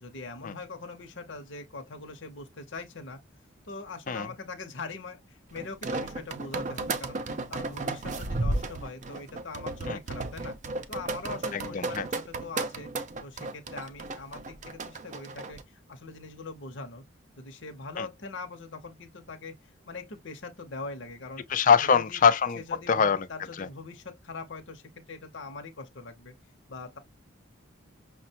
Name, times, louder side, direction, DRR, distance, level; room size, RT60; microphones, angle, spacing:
voice 1, 0.0-3.2 3.6-7.2 7.5-10.6 10.9-12.9 13.2-17.0 17.4-19.5 19.9-21.4 21.9-22.2 22.6-24.8 25.1-26.3 26.7-27.0, left 3 dB, 60° left, 0.8 m, -42 dB
sound 1, 5.6-15.6, right 2 dB, 35° right, 0.4 m, -34 dB
voice 2, 11.5-12.1 18.0-18.1 21.5-22.6 22.9-23.3 23.6-23.7, left 6 dB, 40° left, 0.4 m, -23 dB
5.8 x 2.2 x 2.8 m
head